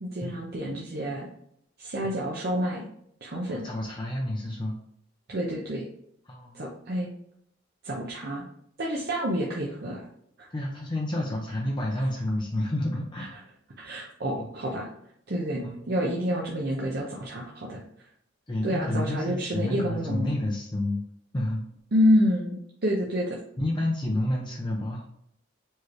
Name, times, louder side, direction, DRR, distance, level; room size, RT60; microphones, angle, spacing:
voice 1, 0.0-1.3 1.8-2.9 3.2-3.7 5.3-5.8 6.5-7.1 7.8-8.5 8.8-10.1 10.4-10.5 13.8-14.9 15.3-17.8 18.6-20.3 21.9-23.4, equal, 55° right, -2 dB, 0.7 m, -28 dB
voice 2, 3.5-4.8 6.3-6.6 10.5-13.4 14.4-14.5 15.6-15.8 18.5-21.0 21.3-21.6 23.6-25.0, left 1 dB, 25° left, -1 dB, 0.6 m, -29 dB
4.5 x 3.1 x 3.2 m, 0.72 s
head